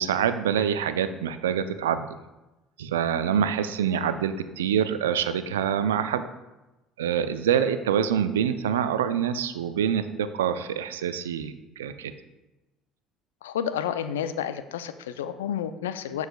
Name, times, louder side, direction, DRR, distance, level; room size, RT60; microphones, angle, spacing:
voice 1, 0.0-2.1 2.8-6.2 7.0-12.1, right 8 dB, 85° right, 11 dB, 0.3 m, -26 dB
voice 2, 13.4-16.3, left 9 dB, 85° left, 11 dB, 0.3 m, -30 dB
11.0 x 4.7 x 2.2 m, 1.0 s
hypercardioid pair, 65°, 0 cm